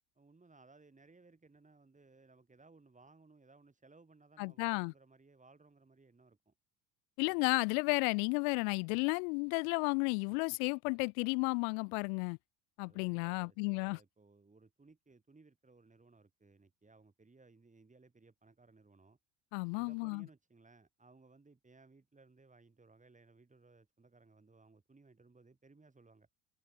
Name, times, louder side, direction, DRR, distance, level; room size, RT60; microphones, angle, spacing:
voice 1, 0.2-6.5 7.3-7.4 12.9-19.2 19.7-26.3, right 3 dB, 15° right, 6.3 m, -62 dB
voice 2, 4.4-4.9 7.2-12.4 12.8-14.0 19.5-20.3, left 37 dB, 70° left, 0.8 m, -33 dB
hypercardioid pair, 80°, 44 cm